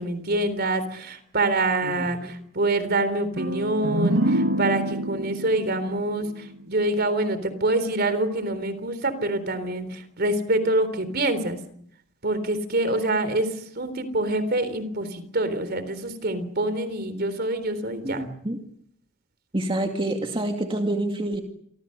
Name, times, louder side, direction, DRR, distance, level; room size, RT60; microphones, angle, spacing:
voice 1, 0.0-11.6 12.2-18.2, right 2 dB, 50° right, 13 dB, 3.7 m, -26 dB
sound 1, 3.4-7.0, right 1 dB, 75° right, 1.9 m, -27 dB
voice 2, 18.0-18.6 19.5-21.4, right 1 dB, 25° right, 3 dB, 2.2 m, -27 dB
28.5 x 24.5 x 6.7 m, 0.67 s
head